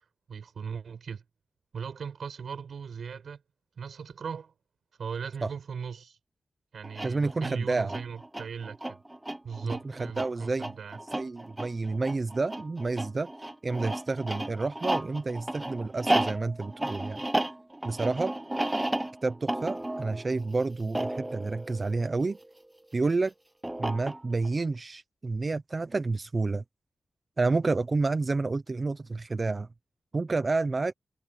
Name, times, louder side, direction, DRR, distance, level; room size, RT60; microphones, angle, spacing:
voice 1, 0.3-1.2 1.7-3.4 3.7-4.5 5.0-6.2 6.7-9.0 9.4-11.0, right 6 dB, 80° right, 6.3 m, -38 dB
sound 1, 6.8-22.6 23.6-24.5, right 1 dB, 15° right, 1.0 m, -33 dB
voice 2, 7.0-7.9 9.6-10.7 11.1-13.3 13.6-17.2 17.8-18.3 19.2-22.4 22.9-23.3 23.8-26.6 27.4-29.7 30.1-30.9, right 3 dB, 35° right, 0.7 m, -29 dB
wide cardioid pair, 110°, 0 cm